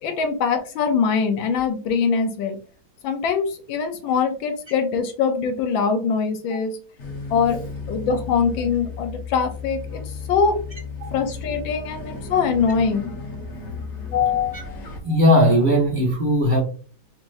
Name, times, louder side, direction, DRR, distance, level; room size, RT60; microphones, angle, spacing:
voice 1, 0.0-2.6 3.0-6.8 7.3-7.6 7.9-10.0 10.3-10.6 11.1-13.1 14.1-14.8, left 6 dB, 75° left, 1.5 m, -23 dB
sound 1, 7.0-15.0, left 4 dB, 45° left, 1.0 m, -34 dB
voice 2, 15.0-16.6, equal, 25° right, 1.3 m, -18 dB
4.4 x 2.9 x 2.6 m
omnidirectional pair, 2.2 m